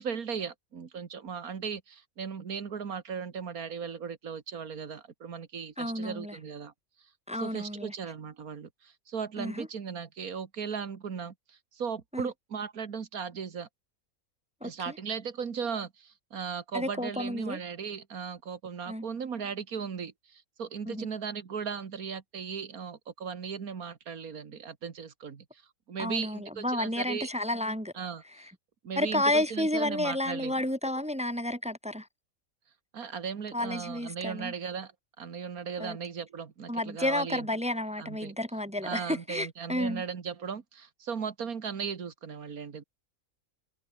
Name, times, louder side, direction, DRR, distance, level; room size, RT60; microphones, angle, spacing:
voice 1, 0.0-6.7 7.4-13.7 14.6-25.6 25.9-27.3 28.0-28.5 28.8-30.5 32.9-34.9 35.2-37.5 38.0-38.4 38.8-42.8, right 6 dB, 85° right, 2.2 m, -37 dB
voice 2, 5.8-6.4 7.3-7.9 9.4-9.7 12.1-12.3 14.6-14.9 16.7-17.6 18.9-19.1 20.9-21.1 26.0-27.9 29.0-32.1 33.5-34.5 35.8-36.0 36.7-40.0, left 1 dB, 5° right, 0.7 m, -31 dB
omnidirectional pair, 1.5 m